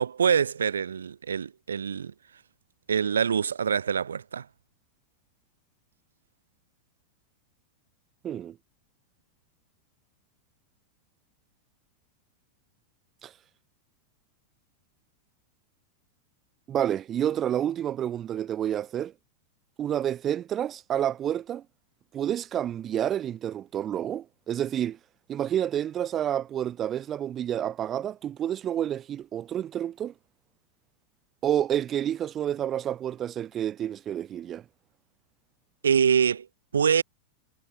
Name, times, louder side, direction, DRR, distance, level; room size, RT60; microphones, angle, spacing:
voice 1, 0.0-2.1 2.9-4.5 35.8-36.5 36.7-37.0, right 7 dB, 70° right, 0.3 m, -25 dB
voice 2, 8.2-8.6 13.2-13.3 16.7-19.1 19.8-21.6 22.1-25.0 25.3-30.1 31.4-34.6, right 10 dB, 30° right, 0.9 m, -29 dB
figure-of-eight pair, 90°, 0 cm